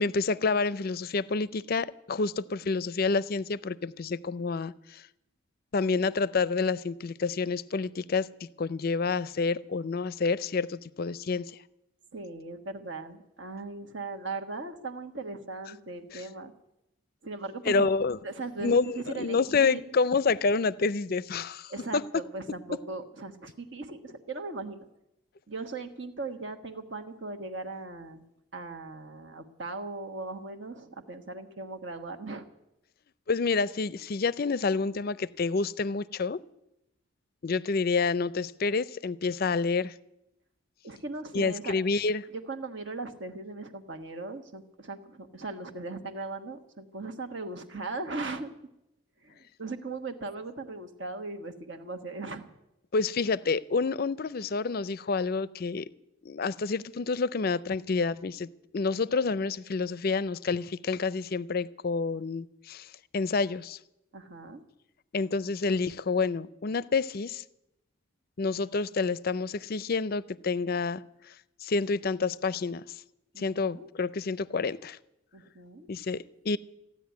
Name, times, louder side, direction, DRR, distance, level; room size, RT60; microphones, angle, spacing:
voice 1, 0.0-5.0 5.7-8.3 8.6-11.6 16.1-16.2 17.7-18.2 18.6-22.0 33.3-36.4 37.4-39.9 41.3-42.3 52.9-55.8 56.2-58.5 58.7-62.9 63.1-63.8 65.1-67.4 68.4-71.0 71.6-72.8 73.4-75.0 75.9-76.6, left 4 dB, 50° left, 18 dB, 0.5 m, -28 dB
voice 2, 12.1-16.5 17.2-17.9 18.2-20.0 21.7-24.9 25.5-28.2 28.5-32.4 40.8-41.7 42.3-48.5 49.2-52.5 62.1-62.2 64.1-64.6 73.3-73.9 75.3-75.9, right 3 dB, 60° right, 6 dB, 1.4 m, -38 dB
15.5 x 10.0 x 9.4 m, 0.87 s
head